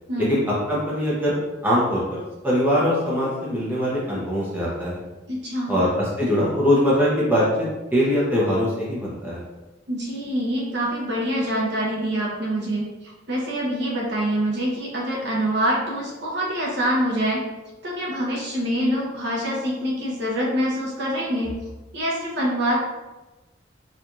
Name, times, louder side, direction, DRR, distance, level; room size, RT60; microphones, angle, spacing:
voice 1, 0.7-5.0 5.7-7.4 7.9-9.4, equal, 10° right, -7 dB, 0.8 m, -22 dB
voice 2, 5.3-5.8 9.9-12.9 13.3-17.4 17.8-21.5 21.9-22.9, equal, 60° right, -4 dB, 0.9 m, -25 dB
4.5 x 2.5 x 2.6 m, 1.1 s
head